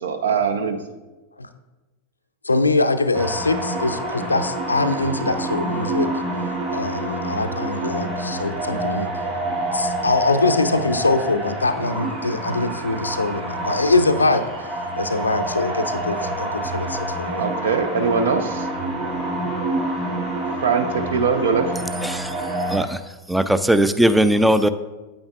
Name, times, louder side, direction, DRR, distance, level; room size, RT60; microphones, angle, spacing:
voice 1, 0.0-0.8 17.4-18.7 20.6-21.7, right 5 dB, 65° right, 0.7 m, -21 dB
voice 2, 2.4-6.1 6.7-9.1 9.7-17.5, left 3 dB, 80° left, 0.4 m, -23 dB
sound 1, 3.1-22.8, right 1 dB, 40° right, 2.5 m, -27 dB
voice 3, 22.0-22.4 22.7-23.0 23.3-24.7, right 1 dB, 5° right, 0.4 m, -18 dB
8.7 x 8.6 x 2.4 m
figure-of-eight pair, 90°, 0 cm